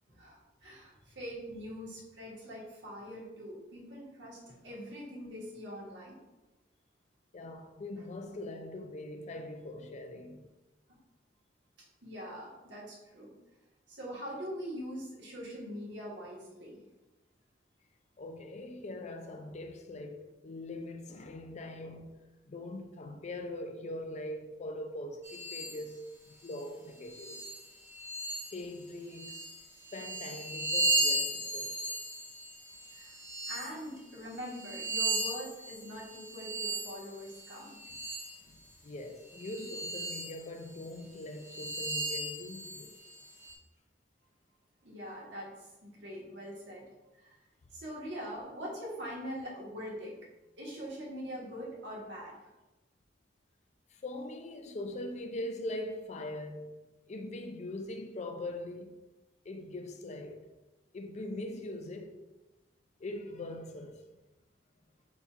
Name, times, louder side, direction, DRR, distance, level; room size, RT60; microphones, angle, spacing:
voice 1, 0.1-6.2 10.9-11.0 12.0-13.3 13.9-16.8 32.8-33.2 33.5-37.8 44.8-47.4 47.7-50.2 50.6-52.5, equal, 70° right, 1.3 m, -43 dB
voice 2, 7.3-10.4 18.2-27.6 28.5-29.4 29.9-31.8 37.9-38.0 38.5-43.0 53.9-59.0 59.4-60.5 60.9-62.2 63.0-64.0, left 1 dB, 40° left, 0.4 m, -42 dB
sound 1, 25.2-25.8 26.4-26.6 27.1-28.7 29.1-33.7 34.3-38.4 39.2-40.4 40.8-40.9 41.4-43.5, right 2 dB, 15° right, 0.6 m, -36 dB
4.1 x 2.4 x 4.3 m
head